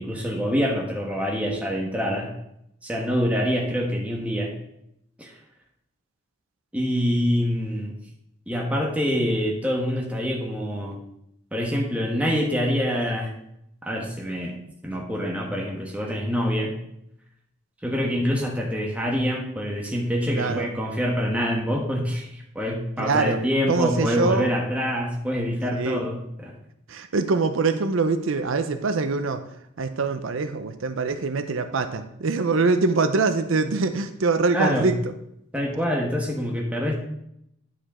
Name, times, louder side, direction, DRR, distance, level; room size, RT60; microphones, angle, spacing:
voice 1, 0.0-2.3 2.8-4.5 5.2-5.3 6.7-7.9 8.5-11.0 11.5-13.3 13.8-14.5 14.8-16.7 17.8-26.6 34.5-34.9 35.5-36.9, equal, 5° right, -1 dB, 1.2 m, -25 dB
voice 2, 20.3-20.7 23.0-23.4 23.7-24.5 25.7-26.0 26.9-29.4 29.8-35.0, right 4 dB, 80° right, 9 dB, 0.6 m, -24 dB
9.9 x 5.0 x 4.3 m, 0.77 s
head